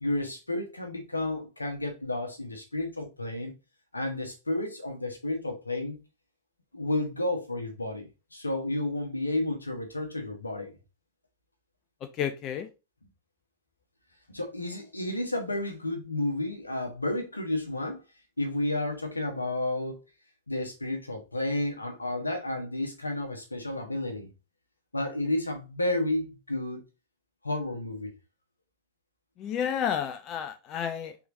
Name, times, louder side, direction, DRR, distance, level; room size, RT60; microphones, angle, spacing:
voice 1, 0.0-3.5 3.9-6.0 6.7-10.7 14.3-18.0 18.4-20.0 20.5-24.3 24.9-26.8 27.4-28.1, left 1 dB, 80° left, 1.0 m, -31 dB
voice 2, 12.0-12.7 29.4-31.3, left 8 dB, 35° left, 0.5 m, -31 dB
4.4 x 3.5 x 2.5 m
figure-of-eight pair, 90°, 0 cm